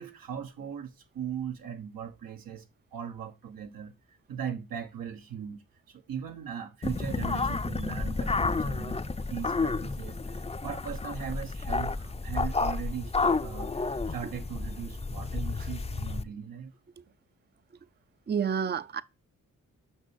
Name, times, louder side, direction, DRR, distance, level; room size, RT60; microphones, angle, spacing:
voice 1, 0.0-2.7 2.9-9.0 9.3-16.7, right 8 dB, 85° right, 1.4 m, -39 dB
sound 1, 6.8-16.2, left 3 dB, 20° left, 0.6 m, -31 dB
voice 2, 18.3-19.0, right 7 dB, 30° right, 0.6 m, -29 dB
6.4 x 5.9 x 6.3 m
supercardioid pair, 45°, 33 cm